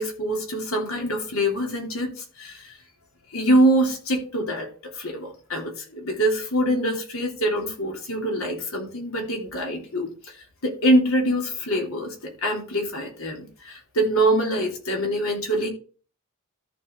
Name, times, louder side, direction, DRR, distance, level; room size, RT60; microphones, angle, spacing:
voice 1, 0.0-2.8 3.3-10.1 10.6-15.7, right 1 dB, 70° left, 1 dB, 3.2 m, -24 dB
13.5 x 5.0 x 3.8 m, 0.38 s
head